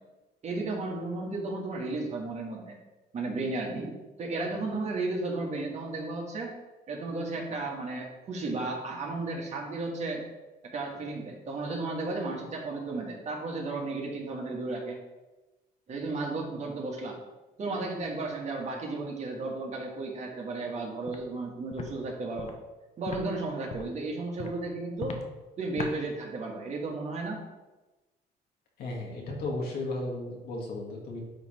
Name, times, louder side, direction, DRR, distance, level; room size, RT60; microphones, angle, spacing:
voice 1, 0.4-2.8 3.1-6.5 6.9-10.2 10.7-15.0 15.9-17.2 17.6-22.5 23.0-25.2 25.6-27.4, right 3 dB, 45° right, -1 dB, 1.7 m, -34 dB
Walk footsteps, 21.1-21.2 21.7-21.9 22.4-22.5 23.1-23.2 23.7-23.9 24.4-24.5 25.0-25.2 25.8-25.9, left 5 dB, 40° left, 1.0 m, -37 dB
voice 2, 28.8-31.2, left 2 dB, 65° left, -1 dB, 1.6 m, -34 dB
9.8 x 3.3 x 4.3 m, 1.1 s
cardioid pair, 110°, 17 cm